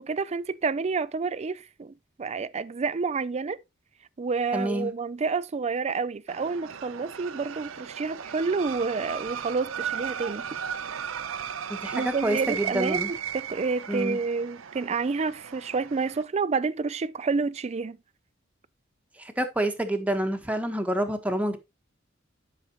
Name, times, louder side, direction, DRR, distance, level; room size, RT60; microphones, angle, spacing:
voice 1, 0.0-3.6 4.2-10.5 11.9-18.0, right 4 dB, 35° right, 0.4 m, -29 dB
voice 2, 4.5-4.9 11.7-13.1 13.9-14.2 19.2-21.6, right 1 dB, 5° right, 1.3 m, -28 dB
sound 1, 6.3-16.2, right 8 dB, 85° right, 0.6 m, -36 dB
11.5 x 5.9 x 2.9 m
head